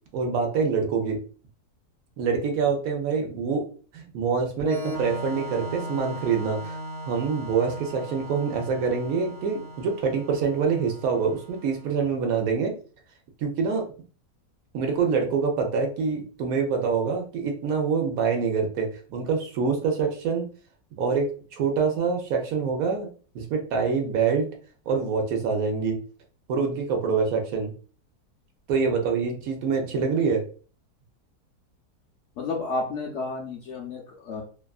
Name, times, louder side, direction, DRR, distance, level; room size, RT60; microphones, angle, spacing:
voice 1, 0.1-1.2 2.2-3.7 3.9-6.8 7.1-12.7 13.4-13.9 14.7-20.4 21.0-23.1 23.3-24.5 24.9-26.0 26.5-27.7 28.7-30.4, right 5 dB, 70° right, 2 dB, 1.0 m, -25 dB
Organ, 4.6-12.1, right 1 dB, 5° left, 0.4 m, -38 dB
voice 2, 32.4-34.4, left 3 dB, 70° left, -1 dB, 0.7 m, -31 dB
2.8 x 2.4 x 2.2 m, 0.40 s
omnidirectional pair, 1.7 m